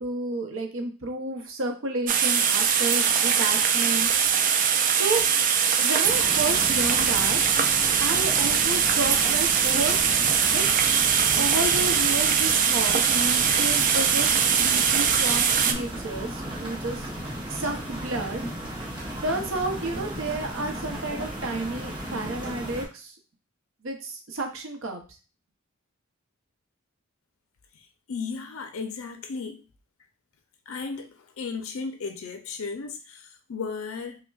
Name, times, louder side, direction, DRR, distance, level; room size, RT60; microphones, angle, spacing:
voice 1, 0.0-4.1 4.9-5.2 5.8-7.4 8.0-10.2 10.5-10.6 11.4-17.1 17.5-18.4 19.2-23.1 23.8-25.0, right 2 dB, 65° right, 4 dB, 0.7 m, -31 dB
sound 1, 2.1-15.7, right 7 dB, 40° right, 0.3 m, -22 dB
sound 2, 6.0-22.9, equal, 20° right, 0.8 m, -35 dB
voice 2, 28.1-29.6 30.7-34.2, left 4 dB, 80° left, 5 dB, 0.5 m, -35 dB
5.2 x 2.1 x 2.3 m, 0.34 s
head